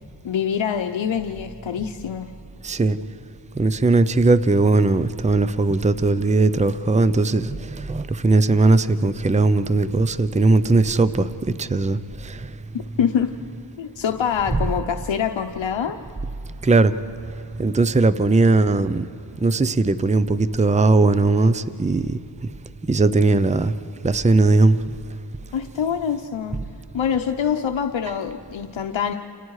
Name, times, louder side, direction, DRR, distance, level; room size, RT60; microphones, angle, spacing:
voice 1, 0.2-2.3 13.0-13.3 13.8-16.0 25.5-26.6 26.9-29.2, left 8 dB, 80° left, 5 dB, 0.9 m, -25 dB
voice 2, 2.6-3.0 3.6-11.3 11.6-12.0 12.2-12.5 14.5-14.6 16.6-16.9 17.6-19.1 19.4-22.2 22.9-23.7 24.0-24.8, right 3 dB, 15° right, 13 dB, 0.6 m, -18 dB
29.5 x 29.0 x 4.9 m, 2.8 s
wide cardioid pair, 90°, 45 cm